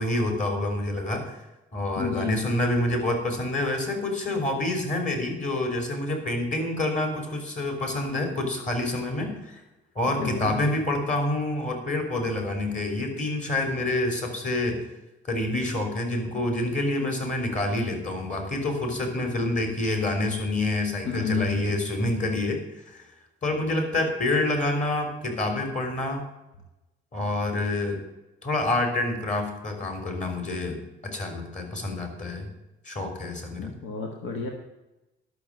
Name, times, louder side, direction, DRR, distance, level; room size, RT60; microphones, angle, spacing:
voice 1, 0.0-1.4 1.7-9.6 10.0-14.8 15.3-22.6 22.9-23.0 23.4-26.3 27.1-28.0 28.4-32.5 32.9-33.7, left 2 dB, 40° left, 4 dB, 3.5 m, -27 dB
voice 2, 1.9-2.5 10.2-10.5 21.0-21.8 33.6-34.5, left 5 dB, 85° left, 2 dB, 1.5 m, -31 dB
12.0 x 6.4 x 7.5 m, 1.0 s
cardioid pair, 90°, 20 cm